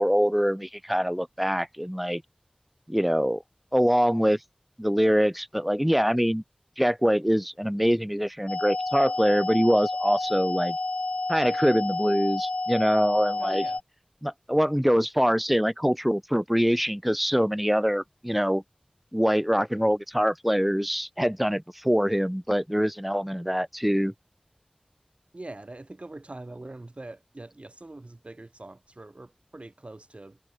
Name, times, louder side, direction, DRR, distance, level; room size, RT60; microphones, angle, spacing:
voice 1, 0.0-2.2 2.9-3.4 3.7-4.4 4.8-6.4 6.8-10.8 11.3-13.6 14.2-18.6 19.1-24.1, equal, 5° right, 0.9 m, -24 dB
sound 1, 8.5-13.8, left 2 dB, 60° left, 0.4 m, -30 dB
voice 2, 13.4-13.8 25.3-30.4, right 2 dB, 55° right, 2.1 m, -43 dB
wide cardioid pair, 45°, 2 cm